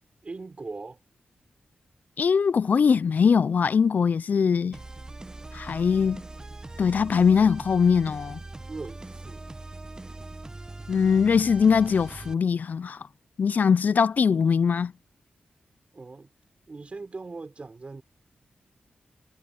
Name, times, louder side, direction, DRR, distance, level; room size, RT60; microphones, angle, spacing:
voice 1, 0.2-1.0 8.7-9.4 15.9-16.3 16.7-18.0, right 3 dB, 35° right, 4.0 m, -40 dB
voice 2, 2.2-4.8 5.5-6.2 6.8-8.4 10.9-13.0 13.4-14.9, left 6 dB, 55° left, 0.3 m, -21 dB
sound 1, 4.7-12.3, right 2 dB, 20° right, 0.9 m, -41 dB
wide cardioid pair, 105°, 3 cm